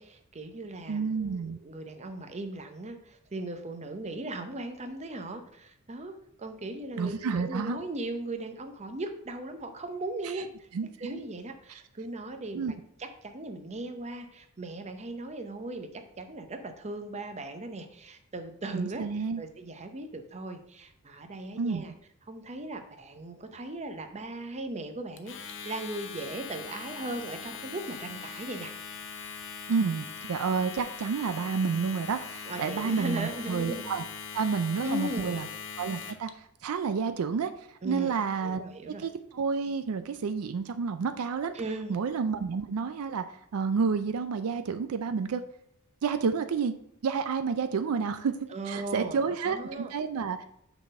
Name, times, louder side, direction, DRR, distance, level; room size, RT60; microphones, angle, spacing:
voice 1, 0.0-6.1 6.4-10.7 11.0-19.1 19.4-21.9 22.3-28.7 32.5-33.9 34.8-35.4 37.8-38.2 38.4-39.1 41.5-42.0 48.5-49.9, right 2 dB, 30° right, 7 dB, 0.7 m, -38 dB
voice 2, 0.9-1.6 7.0-7.8 10.7-11.2 12.5-12.7 18.7-19.4 21.6-21.9 29.7-34.0 34.3-35.5 35.8-38.6 39.0-41.5 41.9-45.4 46.0-46.7 47.0-48.3 48.7-50.4, right 5 dB, 75° right, 10 dB, 0.4 m, -30 dB
Domestic sounds home sounds, 25.2-36.3, left 6 dB, 60° left, 0.7 m, -41 dB
5.9 x 4.0 x 5.3 m, 0.75 s
head